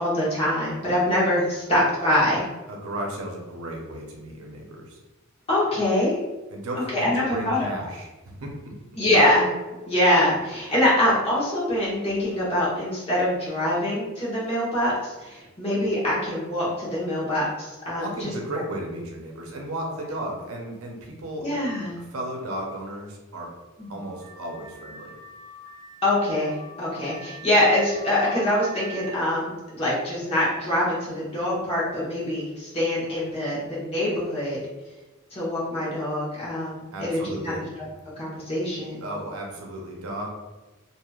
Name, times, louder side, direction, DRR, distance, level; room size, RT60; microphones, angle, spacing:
voice 1, 0.0-2.4 5.5-6.2 6.7-7.7 9.0-9.5 9.9-18.3 21.4-22.0 23.8-24.0 26.0-34.6 35.3-37.6 38.2-39.0, left 1 dB, 30° left, -7 dB, 1.1 m, -24 dB
voice 2, 2.7-5.0 6.5-8.8 18.0-21.5 22.0-23.5 23.9-25.2 36.9-37.7 39.0-40.3, right 1 dB, 85° right, 0 dB, 0.7 m, -34 dB
Car / Alarm, 23.8-29.3, right 2 dB, 45° right, 0.4 m, -44 dB
3.1 x 2.7 x 2.3 m, 1.1 s
head